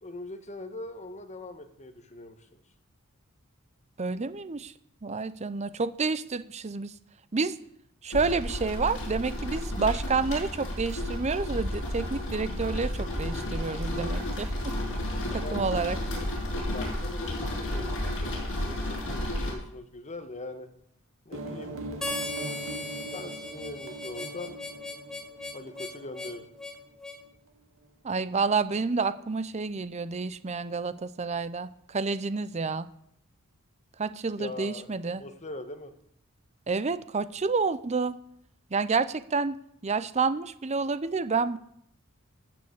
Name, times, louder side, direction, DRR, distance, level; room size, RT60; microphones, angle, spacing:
voice 1, 0.0-2.4 15.4-15.6 15.9-16.3 16.7-20.7 21.2-21.7 23.1-24.6 25.5-26.5 34.4-35.9, left 2 dB, 35° left, 7 dB, 1.4 m, -42 dB
voice 2, 4.0-4.7 5.0-6.9 7.3-7.6 8.0-14.7 15.3-16.0 28.0-32.9 34.0-35.2 36.7-38.2 38.7-39.6 39.8-41.6, right 4 dB, 30° right, 15 dB, 0.6 m, -29 dB
sound 1, 8.1-19.5, left 1 dB, 65° left, 6.5 m, -32 dB
sound 2, 21.3-26.7, right 2 dB, 70° right, 1.9 m, -41 dB
Harmonica, 22.0-27.2, left 2 dB, 5° left, 1.3 m, -38 dB
13.5 x 7.1 x 8.1 m, 0.71 s
head